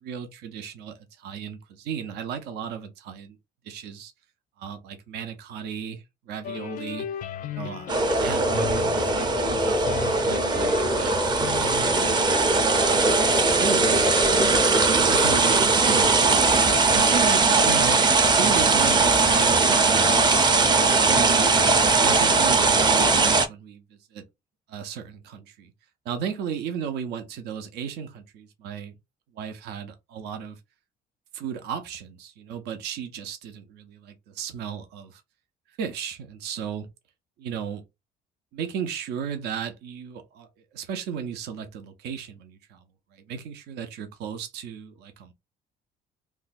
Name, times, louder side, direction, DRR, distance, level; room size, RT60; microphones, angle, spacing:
voice 1, 0.0-3.4 3.6-4.1 4.6-7.1 7.5-11.2 11.6-13.2 13.6-14.0 14.6-18.0 18.4-20.2 20.7-21.5 22.0-23.8 24.1-24.2 24.7-25.7 26.1-28.9 29.3-30.6 31.3-35.2 35.8-36.9 37.4-37.8 38.5-40.5 40.7-42.8 43.1-45.3, right 7 dB, 85° right, 0.6 m, -35 dB
sound 1, 6.4-12.5, left 8 dB, 55° left, 0.4 m, -34 dB
sound 2, 7.9-23.5, right 3 dB, 25° right, 0.5 m, -20 dB
2.6 x 2.3 x 4.0 m
cardioid pair, 110°, 17 cm